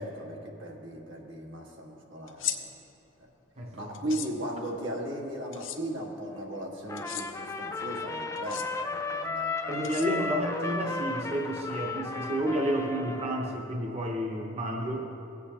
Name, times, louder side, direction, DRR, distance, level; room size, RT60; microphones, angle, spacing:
voice 1, 0.0-2.7 3.7-10.0, right 1 dB, 80° right, -2 dB, 1.7 m, -37 dB
sound 1, 2.3-2.6 3.9-4.3 5.5-5.8 7.0-7.3 8.4-8.7 9.8-10.4, left 10 dB, 90° left, 0.7 m, -35 dB
voice 2, 3.6-3.9 9.7-15.1, equal, 35° right, 0 dB, 0.8 m, -30 dB
Trumpet, 6.9-13.6, left 3 dB, 15° left, 0.3 m, -35 dB
18.0 x 8.3 x 2.9 m, 2.9 s
head